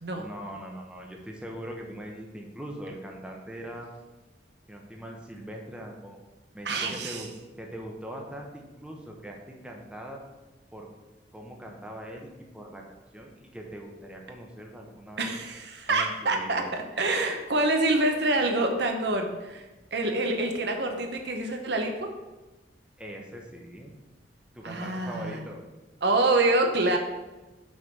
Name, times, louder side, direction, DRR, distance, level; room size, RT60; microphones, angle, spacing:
voice 1, 0.1-3.9 4.7-6.2 6.5-7.3 7.6-10.2 10.7-10.9 11.3-12.3 12.5-12.8 13.1-15.3 15.9-16.7 23.0-24.0 24.5-25.6, equal, 5° right, 0 dB, 0.8 m, -41 dB
voice 2, 6.6-7.2 15.2-19.6 19.9-22.1 24.6-25.4 26.0-27.0, right 2 dB, 65° right, 4 dB, 0.9 m, -26 dB
6.2 x 3.9 x 6.1 m, 1.1 s
head